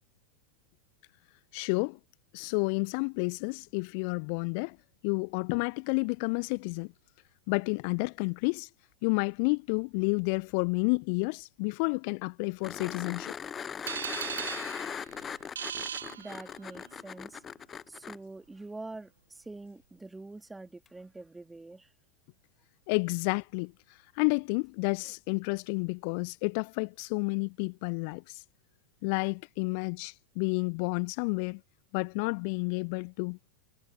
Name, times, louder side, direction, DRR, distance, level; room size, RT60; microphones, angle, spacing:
voice 1, 1.5-2.0 2.3-4.8 5.0-6.9 7.5-8.7 9.0-13.3 22.9-28.4 29.0-31.6 31.9-33.5, left 36 dB, 45° left, 1.1 m, -30 dB
sound 1, 12.6-18.2 20.9-21.0, left 7 dB, 20° left, 0.7 m, -40 dB
sound 2, 13.9-16.9, right 8 dB, 65° right, 1.5 m, -38 dB
voice 2, 16.2-17.4 17.9-21.9, right 2 dB, 10° right, 3.4 m, -45 dB
figure-of-eight pair, 90°, 0 cm